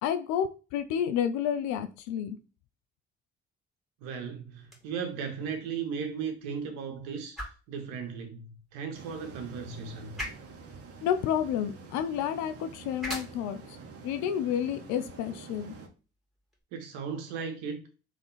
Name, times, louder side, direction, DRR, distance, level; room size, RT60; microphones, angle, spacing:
voice 1, 0.0-2.4 11.0-13.8 14.0-15.8, left 9 dB, 75° left, 0.5 m, -30 dB
voice 2, 4.0-10.2 16.7-17.8, right 6 dB, 80° right, 1.2 m, -36 dB
sound 1, 4.6-16.6, left 1 dB, ahead, 2.2 m, -47 dB
sound 2, 8.9-15.9, right 4 dB, 55° right, 1.2 m, -47 dB
3.6 x 3.4 x 4.1 m
hypercardioid pair, 55°, 29 cm